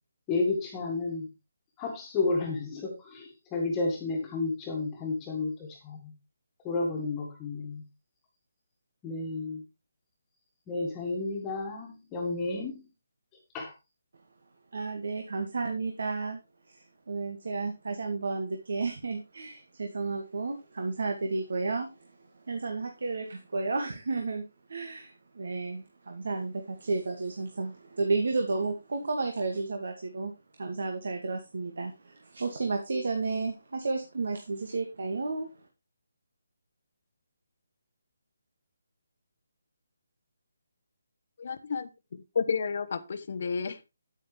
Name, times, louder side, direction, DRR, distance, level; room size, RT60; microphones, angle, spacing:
voice 1, 0.3-1.3 1.8-6.1 6.6-7.8 9.0-9.6 10.7-12.9 13.5-13.7, left 3 dB, 15° left, 1.8 m, -31 dB
voice 2, 14.7-16.4 16.7-22.1 22.5-24.4 24.7-30.3 30.6-35.5, right 3 dB, 65° right, 2.1 m, -32 dB
voice 3, 41.4-43.8, left 5 dB, 45° left, 1.0 m, -32 dB
9.8 x 8.9 x 3.4 m
hypercardioid pair, 170°, 0 cm